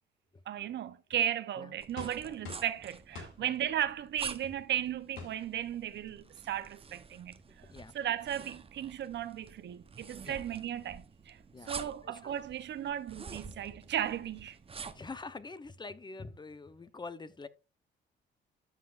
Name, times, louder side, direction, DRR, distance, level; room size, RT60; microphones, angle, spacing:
voice 1, 0.5-11.4 11.7-14.6, right 11 dB, 65° right, 0.7 m, -36 dB
sound 1, 1.8-15.1, right 5 dB, 30° right, 0.8 m, -48 dB
sound 2, 2.0-2.8 3.1-3.4 4.4-4.6 5.2-5.4 6.1-6.2 6.4-6.6, left 5 dB, 85° left, 2.5 m, -45 dB
voice 2, 11.5-12.4 13.4-13.8 14.9-17.5, left 3 dB, 20° left, 0.7 m, -46 dB
13.0 x 5.8 x 2.4 m
cardioid pair, 90°, 20 cm